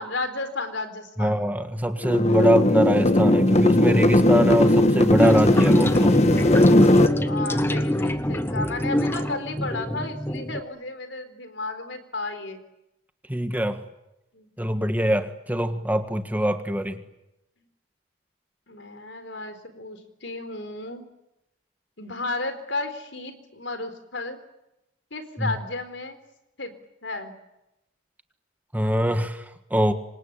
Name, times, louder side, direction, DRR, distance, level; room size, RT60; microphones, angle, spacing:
voice 1, 0.0-1.5 7.2-12.6 14.3-14.5 18.7-21.0 22.0-24.4 25.1-26.2 26.6-26.7 27.0-27.3, left 2 dB, 70° left, 10 dB, 4.1 m, -33 dB
voice 2, 1.2-6.2 13.3-13.8 14.6-17.0 25.4-25.5 28.7-29.9, equal, 10° right, 8 dB, 1.5 m, -23 dB
sound 1, 2.0-7.1, left 1 dB, 35° left, 1.7 m, -18 dB
sound 2, 5.1-10.6, equal, 10° left, 1.2 m, -26 dB
27.5 x 25.0 x 8.6 m, 0.91 s
head